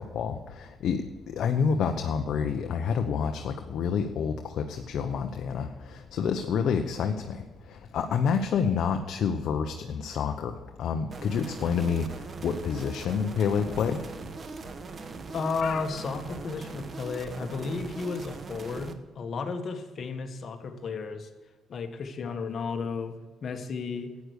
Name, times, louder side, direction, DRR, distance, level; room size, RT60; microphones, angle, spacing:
voice 1, 0.0-7.4 7.9-12.1 12.4-14.0 15.6-15.8, left 6 dB, 70° left, 5 dB, 0.9 m, -28 dB
sound 1, 11.1-18.9, right 4 dB, 45° right, 1.2 m, -41 dB
voice 2, 15.3-21.3 21.7-24.1, left 4 dB, 55° left, 6 dB, 1.6 m, -33 dB
12.0 x 9.6 x 6.5 m, 1.3 s
cardioid pair, 90°, 0 cm